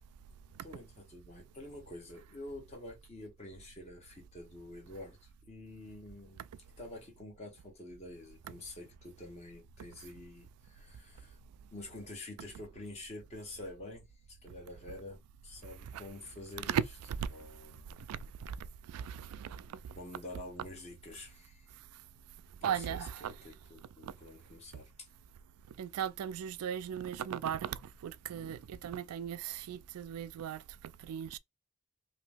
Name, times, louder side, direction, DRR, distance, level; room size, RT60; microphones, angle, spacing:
voice 1, 0.6-6.4 6.8-11.4 11.7-14.0 14.3-16.8 17.3-18.0 19.9-21.7 22.6-25.1, left 2 dB, 30° left, 1.0 m, -48 dB
voice 2, 18.1-18.6 18.9-19.8 22.6-23.3 24.0-24.1 25.8-30.6 31.0-31.4, right 8 dB, 90° right, 0.3 m, -37 dB
2.9 x 2.6 x 3.3 m
head